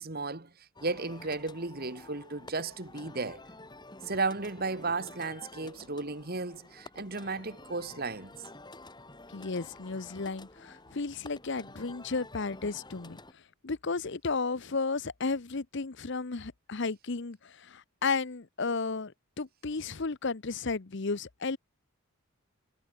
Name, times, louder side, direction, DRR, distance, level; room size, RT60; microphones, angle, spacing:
voice 1, 0.0-3.4 4.0-8.4, right 3 dB, 45° right, 1.9 m, -34 dB
sound 1, 0.8-13.3, left 2 dB, 20° left, 5.9 m, -50 dB
voice 2, 9.3-21.6, left 4 dB, 55° left, 0.8 m, -33 dB
head